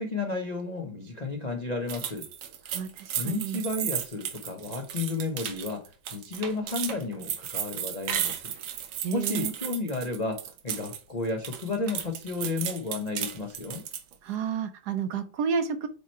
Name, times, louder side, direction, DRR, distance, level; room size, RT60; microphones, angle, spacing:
voice 1, 0.0-2.3 3.2-8.5 9.1-13.8, left 3 dB, 75° left, 0.3 m, -32 dB
sound 1, 1.9-11.0 11.3-14.1, right 9 dB, 85° right, 1.7 m, -34 dB
voice 2, 2.7-3.6 9.0-9.5 14.2-15.9, right 6 dB, 70° right, 1.0 m, -31 dB
8.3 x 3.0 x 4.4 m
omnidirectional pair, 2.2 m